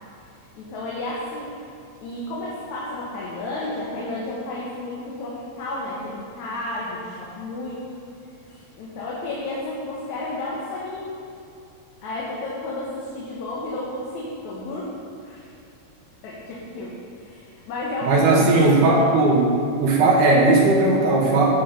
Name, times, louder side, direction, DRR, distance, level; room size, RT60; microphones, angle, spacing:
voice 1, 0.3-1.5 2.0-7.8 8.5-11.2 12.0-15.5 16.2-19.1, left 2 dB, 70° left, -5 dB, 2.7 m, -32 dB
voice 2, 18.0-19.5 19.8-21.5, right 2 dB, 80° right, -2 dB, 2.9 m, -17 dB
9.5 x 9.4 x 5.2 m, 2.6 s
omnidirectional pair, 3.5 m